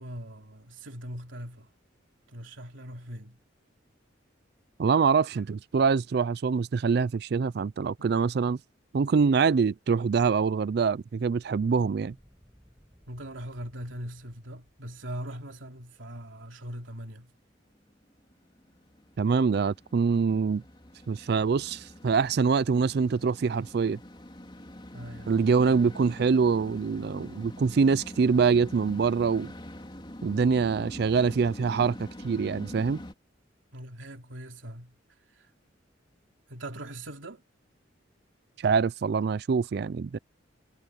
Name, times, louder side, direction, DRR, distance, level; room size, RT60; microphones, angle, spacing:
voice 1, 0.0-1.7 2.3-3.4 8.0-8.1 13.1-17.3 24.9-25.9 33.7-35.0 35.3-35.5 36.5-37.4, right 1 dB, 85° right, 3.1 m, -41 dB
voice 2, 4.8-8.6 8.9-12.1 19.2-20.6 21.1-24.0 25.3-29.5 30.2-33.0 38.6-40.2, right 5 dB, 55° right, 0.4 m, -25 dB
Fire, 11.3-16.5, equal, 5° right, 7.9 m, -61 dB
sound 1, 17.9-33.1, left 1 dB, 25° left, 3.5 m, -45 dB
head